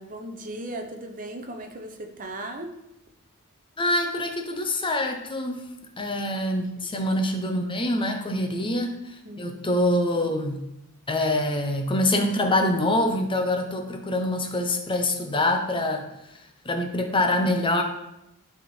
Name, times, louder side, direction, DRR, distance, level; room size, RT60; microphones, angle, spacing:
voice 1, 0.0-2.7 9.2-9.6, right 1 dB, 40° right, 4 dB, 0.8 m, -37 dB
voice 2, 3.8-5.6 6.0-10.6 11.1-16.1 16.6-17.8, left 1 dB, 25° left, 4 dB, 0.8 m, -25 dB
11.0 x 3.7 x 4.5 m, 0.86 s
head